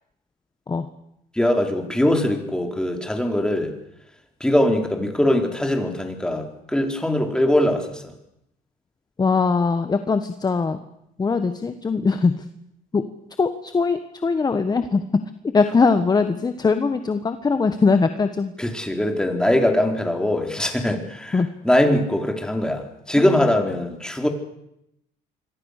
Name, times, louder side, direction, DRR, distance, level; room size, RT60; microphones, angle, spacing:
voice 1, 1.3-3.8 4.4-8.0 18.6-24.3, left 1 dB, 5° left, 4 dB, 4.1 m, -21 dB
voice 2, 9.2-10.8 11.2-12.4 12.9-13.0 13.4-15.0 15.5-18.5 21.3-21.5 23.2-23.4, left 4 dB, 25° left, 9 dB, 1.4 m, -21 dB
26.5 x 22.0 x 6.7 m, 0.81 s
cardioid pair, 110°, 17 cm